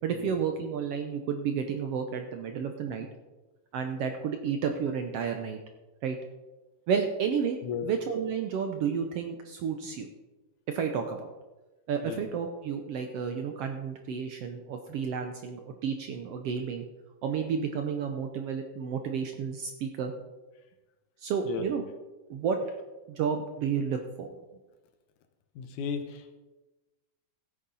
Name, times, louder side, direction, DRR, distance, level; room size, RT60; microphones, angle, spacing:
voice 1, 0.0-3.1 3.7-5.6 6.0-6.2 6.9-7.6 7.8-10.1 10.7-11.3 11.9-16.8 17.2-20.1 21.2-21.8 22.3-22.6 23.1-24.3, right 6 dB, 70° right, 5 dB, 1.5 m, -31 dB
voice 2, 25.6-26.4, left 7 dB, 80° left, 7 dB, 2.5 m, -35 dB
15.5 x 8.5 x 4.0 m, 1.1 s
omnidirectional pair, 3.5 m